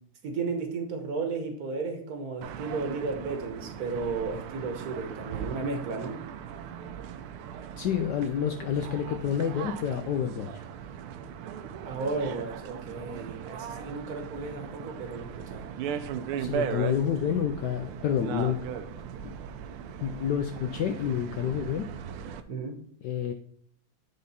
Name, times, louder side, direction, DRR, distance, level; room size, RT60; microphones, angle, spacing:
voice 1, 0.2-6.2 11.8-15.7 22.5-22.8, right 4 dB, 50° right, 4 dB, 1.3 m, -34 dB
sound 1, 2.4-22.4, right 8 dB, 85° right, 1.5 m, -38 dB
voice 2, 7.8-10.6 16.4-18.6 19.2-19.3 20.0-21.9 23.0-23.3, left 9 dB, 80° left, 7 dB, 0.9 m, -29 dB
8.4 x 3.8 x 4.1 m, 0.62 s
omnidirectional pair, 2.3 m